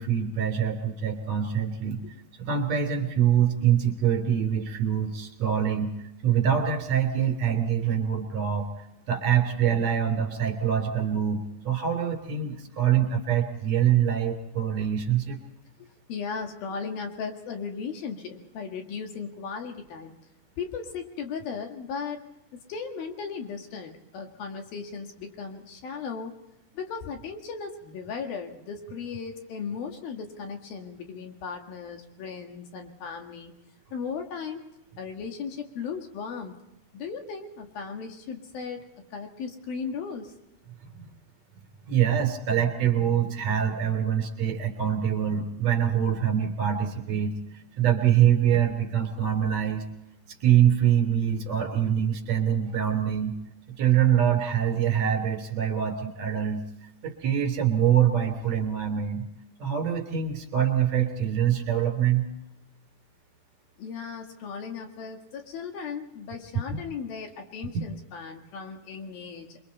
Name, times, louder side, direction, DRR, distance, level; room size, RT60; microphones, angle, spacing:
voice 1, 0.0-2.0 2.4-5.9 6.2-8.7 9.1-15.4 41.0-41.1 41.9-47.3 47.8-49.9 50.4-53.4 53.8-56.6 57.0-59.2 59.6-62.3 66.7-66.8 67.7-67.8, right 9 dB, 40° right, 5 dB, 4.2 m, -24 dB
voice 2, 16.1-20.2 20.6-22.2 22.5-26.3 26.7-33.5 33.9-34.6 35.0-36.6 36.9-40.3 63.8-69.6, left 5 dB, 65° left, 4 dB, 3.4 m, -36 dB
28.0 x 24.0 x 4.2 m, 0.88 s
omnidirectional pair, 4.9 m